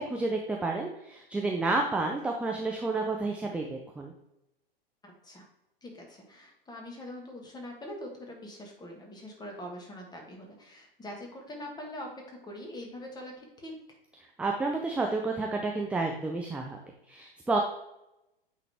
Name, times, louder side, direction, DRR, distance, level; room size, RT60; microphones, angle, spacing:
voice 1, 0.0-4.1 14.4-16.8 17.1-17.6, right 3 dB, 5° right, 1 dB, 0.5 m, -30 dB
voice 2, 5.0-5.4 5.8-14.0, left 1 dB, 15° left, 1 dB, 1.7 m, -43 dB
8.8 x 3.9 x 3.5 m, 0.88 s
figure-of-eight pair, 95°, 29 cm